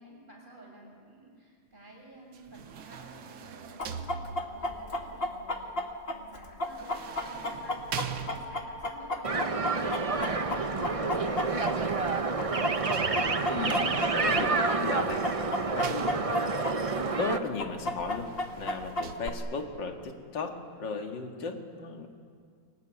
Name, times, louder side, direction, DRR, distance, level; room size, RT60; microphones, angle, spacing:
voice 1, 0.0-12.8 21.3-21.6, right 1 dB, 25° right, -1 dB, 7.2 m, -52 dB
sound 1, 2.3-4.8 6.6-8.9 11.8-13.6 14.6-16.6 18.0-19.2, right 7 dB, 90° right, 2.0 m, -43 dB
Chicken rooster, 3.8-12.1 12.4-16.7 17.0-17.1 17.6-19.3, left 1 dB, 30° left, 1.8 m, -32 dB
sound 2, 9.2-17.4, right 4 dB, 55° right, 0.3 m, -29 dB
voice 2, 13.4-22.1, left 4 dB, 65° left, 4 dB, 2.7 m, -36 dB
24.5 x 21.0 x 10.0 m, 2.1 s
omnidirectional pair, 2.2 m